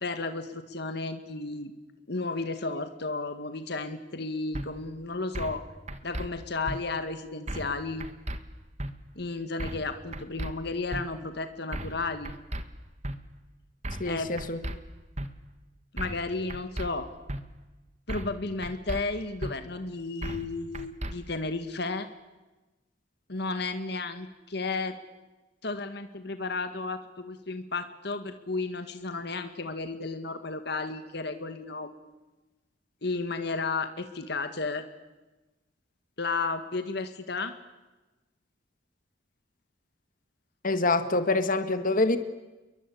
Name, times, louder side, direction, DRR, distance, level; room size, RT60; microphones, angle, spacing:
voice 1, 0.0-1.7 2.1-5.6 6.0-8.1 9.2-12.3 14.0-14.3 15.9-17.1 18.1-22.1 23.3-25.0 25.6-31.9 33.0-34.8 36.2-37.5, left 3 dB, 65° left, 9 dB, 1.8 m, -33 dB
sound 1, 4.5-4.7 5.4-5.6 5.9-6.3 6.7-6.8 7.5-7.7 8.0-8.4 8.8-8.9 9.6-9.9 10.1-10.5 10.9-11.0 11.7-12.0 12.3-12.6 13.0-13.2 13.8-14.1 14.4-14.8 15.2-15.3 16.0-16.2 16.5-16.9 17.3-17.4 18.1-18.4 18.6-19.0 19.4-19.5 20.2-20.5 20.7-21.1, right 1 dB, 40° right, 1.9 m, -34 dB
voice 2, 14.0-14.6 40.6-42.2, left 2 dB, 50° left, 9 dB, 1.9 m, -25 dB
29.5 x 22.5 x 8.6 m, 1.1 s
head